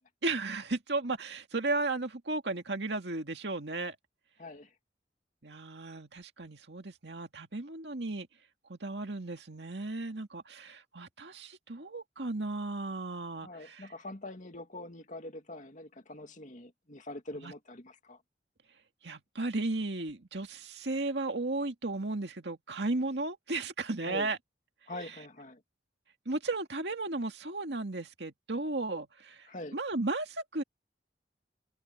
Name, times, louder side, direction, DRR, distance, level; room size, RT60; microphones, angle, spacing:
voice 1, 0.2-4.0 5.4-8.3 8.7-13.9 17.3-17.5 19.0-24.4 26.3-30.6, right 2 dB, 70° right, 2.2 m, -35 dB
voice 2, 4.4-4.7 13.4-18.2 24.1-24.3 24.9-25.6 29.5-29.8, left 1 dB, 45° left, 2.3 m, -44 dB
head